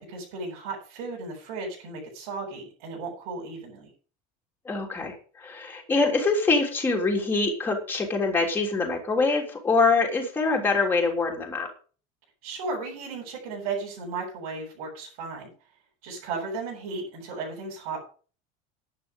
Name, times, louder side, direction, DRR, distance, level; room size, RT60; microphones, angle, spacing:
voice 1, 0.0-3.9 12.4-15.5 16.0-18.0, right 4 dB, 80° right, -4 dB, 8.0 m, -35 dB
voice 2, 4.7-11.7, left 3 dB, 10° left, 0 dB, 3.3 m, -24 dB
11.5 x 9.9 x 5.3 m, 0.38 s
cardioid pair, 175°, 18 cm